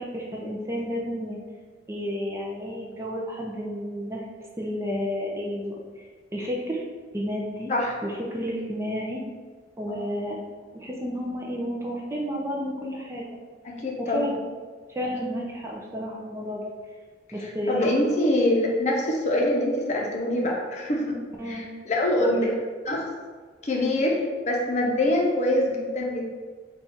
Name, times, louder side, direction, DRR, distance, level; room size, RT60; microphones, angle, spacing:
voice 1, 0.0-1.4 1.9-4.2 4.6-6.0 6.3-6.8 7.1-7.7 8.0-9.2 9.8-10.4 10.7-13.2 14.0-14.4 14.9-16.7 17.3-17.9 21.4-21.7 22.2-22.4, equal, 15° right, -2 dB, 0.4 m, -31 dB
voice 2, 13.6-14.2 17.7-21.2 21.5-22.5 22.9-23.1 23.6-26.2, left 1 dB, 40° left, -1 dB, 0.6 m, -24 dB
4.1 x 2.4 x 4.2 m, 1.5 s
head